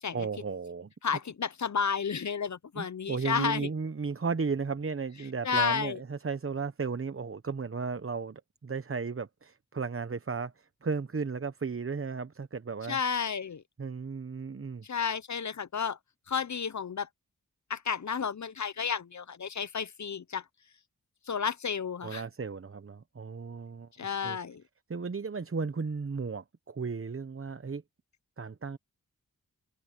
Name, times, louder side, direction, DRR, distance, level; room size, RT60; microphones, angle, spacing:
voice 1, 0.1-0.9 2.8-13.0 13.8-14.8 22.0-23.9 24.2-24.4 24.9-27.8 28.4-28.8, right 5 dB, 35° right, 1.0 m, -35 dB
voice 2, 1.0-3.7 5.4-6.0 12.9-13.6 14.8-16.0 16.3-17.1 17.7-20.4 21.3-22.2 24.0-24.6, left 6 dB, 50° left, 0.8 m, -31 dB
cardioid pair, 50°, 37 cm